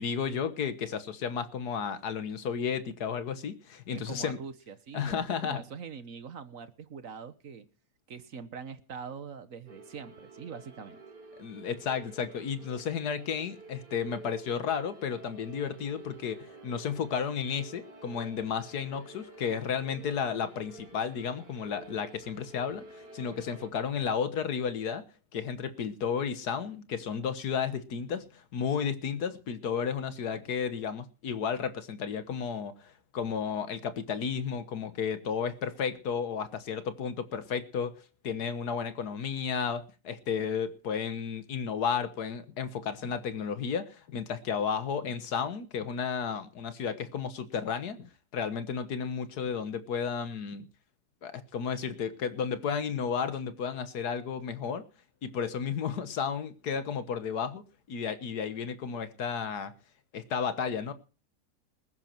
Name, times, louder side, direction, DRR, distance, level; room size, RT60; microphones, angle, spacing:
voice 1, 0.0-4.4 4.9-5.6 11.4-25.0 25.3-37.9 38.2-50.7 51.2-54.8 55.2-57.6 57.9-59.7 60.1-60.9, left 6 dB, 70° left, 1.8 m, -33 dB
voice 2, 3.9-7.6 8.1-11.0, right 6 dB, 55° right, 1.5 m, -43 dB
sound 1, 9.7-23.7, right 2 dB, 80° right, 3.7 m, -50 dB
20.0 x 10.5 x 4.6 m
omnidirectional pair, 1.8 m